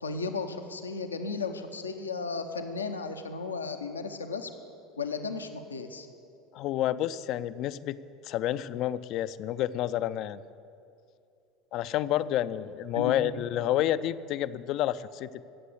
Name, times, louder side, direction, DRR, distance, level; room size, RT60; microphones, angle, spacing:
voice 1, 0.0-4.5 5.0-6.1 12.9-13.1, left 4 dB, 90° left, 6 dB, 0.8 m, -34 dB
voice 2, 6.5-8.0 8.2-10.4 11.7-15.4, left 12 dB, 55° left, 15 dB, 0.4 m, -29 dB
16.5 x 7.5 x 8.3 m, 2.5 s
hypercardioid pair, 75°, 0 cm